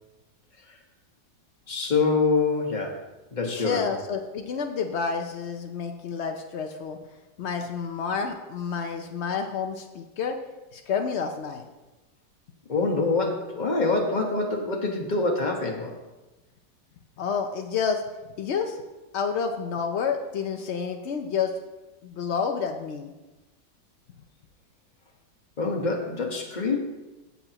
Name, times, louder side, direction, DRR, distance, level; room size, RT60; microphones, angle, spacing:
voice 1, 1.7-2.9 3.3-3.9 12.7-16.0 25.6-26.8, left 3 dB, 30° left, 1 dB, 1.3 m, -25 dB
voice 2, 3.5-7.0 7.4-10.4 10.7-11.7 17.2-18.0 18.4-18.8 19.1-21.5 22.0-23.1, left 6 dB, 75° left, 4 dB, 0.6 m, -29 dB
16.0 x 7.0 x 2.9 m, 1.1 s
omnidirectional pair, 1.9 m